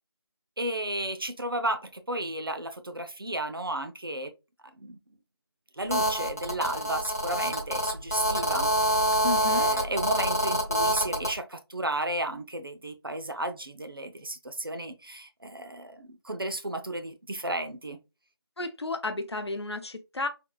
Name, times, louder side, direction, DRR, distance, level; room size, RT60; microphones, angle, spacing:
voice 1, 0.6-4.3 4.8-5.0 5.8-18.0, right 1 dB, 60° right, 0.5 m, -33 dB
Telephone, 5.9-11.3, equal, 35° left, 0.5 m, -26 dB
voice 2, 9.2-9.7 18.6-20.3, left 3 dB, 85° left, 0.6 m, -32 dB
3.6 x 2.3 x 2.2 m
figure-of-eight pair, 180°, 13 cm